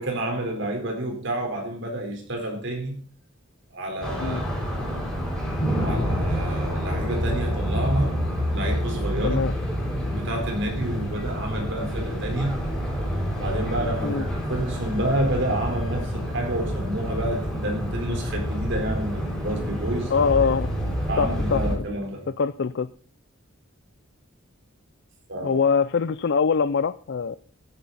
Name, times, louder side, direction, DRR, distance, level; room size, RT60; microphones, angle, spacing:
voice 1, 0.0-3.0 3.7-5.0 5.8-8.3 8.5-9.4 10.0-12.6 13.4-20.1 21.1-22.3 25.3-25.6, right 1 dB, 65° right, 4.3 m, -29 dB
sound 1, 4.0-21.7, equal, 5° left, 5.6 m, -28 dB
voice 2, 20.1-20.7 21.2-21.8 22.3-22.9 25.4-27.4, left 5 dB, 60° left, 0.5 m, -23 dB
14.5 x 9.8 x 4.1 m
head